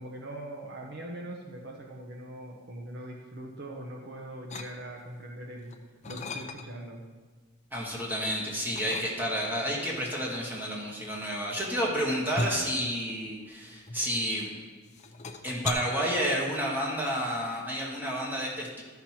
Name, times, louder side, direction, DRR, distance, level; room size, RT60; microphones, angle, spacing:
voice 1, 0.0-5.7 6.1-7.0, right 1 dB, 50° right, 0 dB, 1.0 m, -41 dB
sound 1, 4.5-5.2 5.6-6.9 7.3-8.1 8.7-9.6 10.4-14.5 14.8-15.7, left 3 dB, 35° left, 0.6 m, -38 dB
voice 2, 7.7-14.5 15.4-18.8, equal, 10° right, -4 dB, 1.6 m, -30 dB
12.5 x 5.9 x 4.4 m, 1.4 s
head